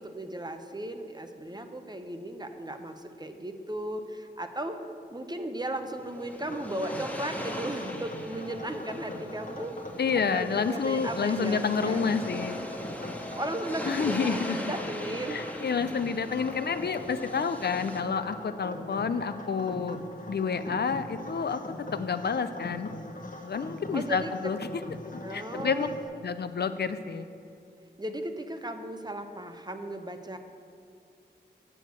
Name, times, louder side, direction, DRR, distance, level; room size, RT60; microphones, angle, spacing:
voice 1, 0.0-4.8 5.1-9.8 10.3-12.1 13.4-15.4 23.9-24.5 25.2-26.0 28.0-30.4, right 1 dB, 25° right, 7 dB, 0.8 m, -36 dB
sound 1, 5.7-18.0, left 1 dB, 10° left, 1.3 m, -40 dB
sound 2, 6.5-26.0, left 2 dB, 50° left, 1.1 m, -42 dB
voice 2, 10.0-12.6 13.8-14.6 15.3-20.0 20.3-21.6 21.9-22.9 23.4-24.6 25.1-25.9 26.2-27.3, left 5 dB, 65° left, 11 dB, 0.4 m, -29 dB
8.4 x 6.4 x 6.7 m, 2.6 s
wide cardioid pair, 55°, 18 cm